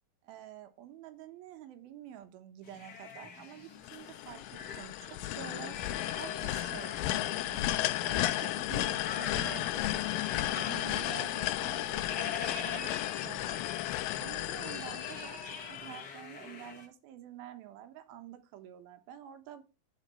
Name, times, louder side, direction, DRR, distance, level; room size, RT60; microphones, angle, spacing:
voice 1, 0.2-4.4 4.7-5.8 6.1-7.7 8.0-10.1 10.3-12.9 13.2-13.6 14.2-19.6, right 10 dB, 80° right, 8 dB, 2.9 m, -48 dB
sound 1, 2.6-16.9, left 5 dB, 40° left, 1.5 m, -45 dB
sound 2, 3.8-15.9, left 15 dB, 80° left, 2.0 m, -34 dB
11.0 x 4.9 x 4.3 m, 0.30 s
omnidirectional pair, 4.3 m